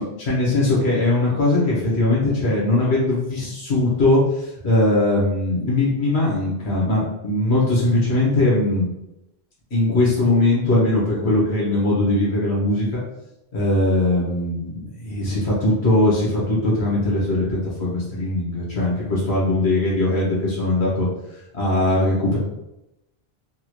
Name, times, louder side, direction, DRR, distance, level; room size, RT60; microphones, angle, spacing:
voice 1, 0.0-8.8 9.7-13.0 13.5-21.1 21.5-22.4, left 2 dB, 90° left, -5 dB, 1.5 m, -20 dB
3.7 x 2.4 x 3.0 m, 0.89 s
omnidirectional pair, 1.1 m